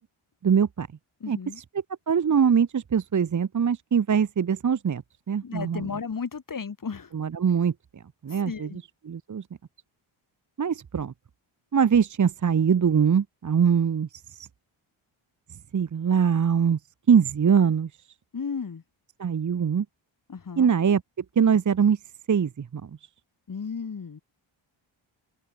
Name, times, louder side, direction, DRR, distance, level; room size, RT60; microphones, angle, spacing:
voice 1, 0.4-0.9 1.3-1.4 2.1-5.0 5.3-5.9 7.1-7.7 8.2-8.7 9.1-9.4 10.6-11.1 11.7-14.5 15.7-16.8 17.1-17.9 19.2-19.8 20.6-21.0 21.4-22.0 22.3-22.8, right 7 dB, 35° right, 1.0 m, -22 dB
voice 2, 1.2-1.6 5.4-7.1 8.3-8.8 18.3-18.8 20.3-20.7 23.5-24.2, left 5 dB, 40° left, 3.2 m, -34 dB
wide cardioid pair, 115°, 50 cm